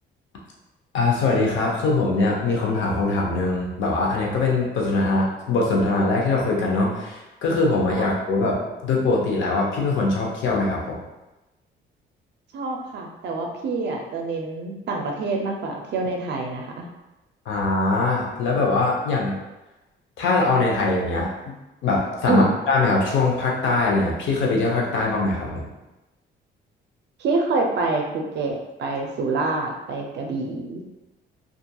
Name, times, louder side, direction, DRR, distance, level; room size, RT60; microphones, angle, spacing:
voice 1, 0.9-11.0 17.5-19.4 20.2-25.7, left 3 dB, 75° left, -2 dB, 0.7 m, -22 dB
voice 2, 12.5-16.9 22.2-22.5 27.2-30.8, right 3 dB, 60° right, 1 dB, 0.5 m, -26 dB
2.7 x 2.4 x 2.2 m, 1.0 s
cardioid pair, 90°, 20 cm